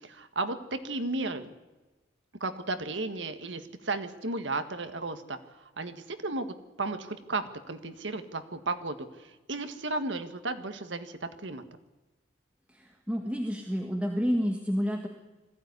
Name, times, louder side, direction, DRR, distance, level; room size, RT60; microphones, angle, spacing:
voice 1, 0.0-1.5 2.4-11.6, right 3 dB, 75° right, 9 dB, 1.7 m, -34 dB
voice 2, 12.7-15.1, equal, 5° right, 2 dB, 1.7 m, -29 dB
21.0 x 15.5 x 9.7 m, 1.2 s
head